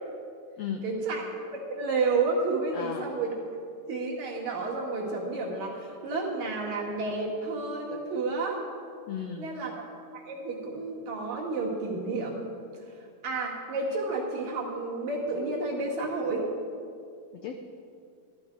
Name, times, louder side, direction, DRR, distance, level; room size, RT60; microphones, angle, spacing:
voice 1, 0.8-3.4 3.9-8.6 9.4-9.7 10.1-12.5 13.2-16.5, right 3 dB, 60° right, -3 dB, 3.3 m, -31 dB
voice 2, 2.7-3.1 9.1-9.5 17.3-17.5, left 8 dB, 80° left, 4 dB, 1.4 m, -35 dB
13.5 x 13.0 x 4.6 m, 2.4 s
omnidirectional pair, 3.7 m